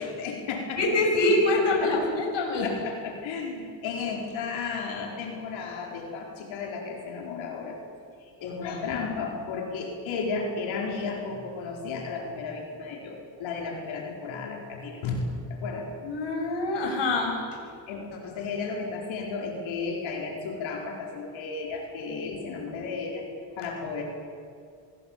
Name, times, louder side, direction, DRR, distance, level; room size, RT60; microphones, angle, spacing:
voice 1, 0.0-0.8 1.8-2.1 2.6-7.8 8.2-15.2 15.5-15.9 17.9-23.3 23.6-24.0, left 4 dB, 80° left, 0 dB, 4.7 m, -33 dB
voice 2, 0.7-2.7 8.6-8.8 16.0-17.6 23.6-23.7, left 2 dB, 65° left, 1 dB, 6.7 m, -25 dB
25.5 x 21.5 x 7.4 m, 2.3 s
supercardioid pair, 75°, 45 cm